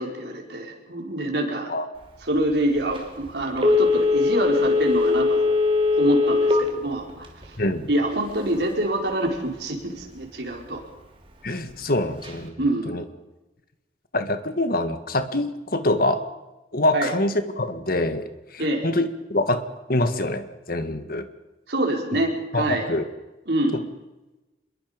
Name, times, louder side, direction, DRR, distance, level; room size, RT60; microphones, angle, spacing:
voice 1, 0.0-1.7 2.2-5.6 5.9-7.6 7.9-10.8 12.6-13.0 16.9-17.1 18.6-18.9 21.7-22.9 23.5-23.8, right 1 dB, 65° right, 0 dB, 5.0 m, -26 dB
Telephone, 3.6-6.7 7.1-7.2, left 3 dB, 30° right, 3.2 m, -20 dB
voice 2, 7.6-7.9 11.4-12.6 12.9-13.0 14.1-16.2 16.7-19.6 19.9-21.3 22.5-23.0 23.7-23.8, left 1 dB, 55° left, 9 dB, 1.9 m, -25 dB
27.0 x 22.0 x 5.3 m, 1.1 s
head